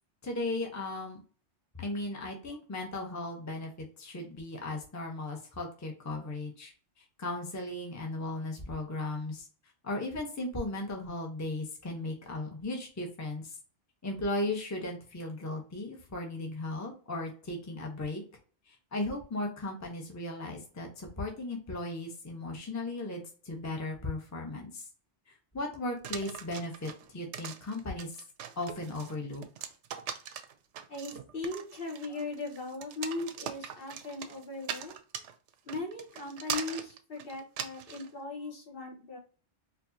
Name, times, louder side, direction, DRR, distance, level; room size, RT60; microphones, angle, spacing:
voice 1, 0.2-1.2 1.8-6.7 7.0-9.5 9.8-13.6 14.0-18.2 18.7-24.9 25.5-28.2 28.6-29.4, left 2 dB, 15° left, 1 dB, 0.8 m, -36 dB
sound 1, 26.0-38.1, right 8 dB, 85° right, 0.9 m, -41 dB
voice 2, 30.9-34.9 35.6-39.2, left 3 dB, 55° left, 0 dB, 1.3 m, -38 dB
4.5 x 2.7 x 2.7 m, 0.38 s
omnidirectional pair, 1.2 m